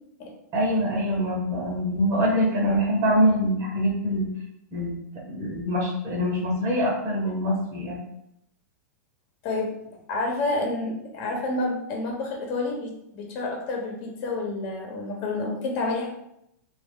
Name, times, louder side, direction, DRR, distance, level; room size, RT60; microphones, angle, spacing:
voice 1, 0.5-4.3 4.7-4.9 5.3-8.0, equal, 35° right, -3 dB, 1.2 m, -24 dB
voice 2, 9.4-16.1, left 2 dB, 45° left, 0 dB, 1.1 m, -29 dB
3.0 x 2.6 x 3.7 m, 0.78 s
hypercardioid pair, 115°, 9 cm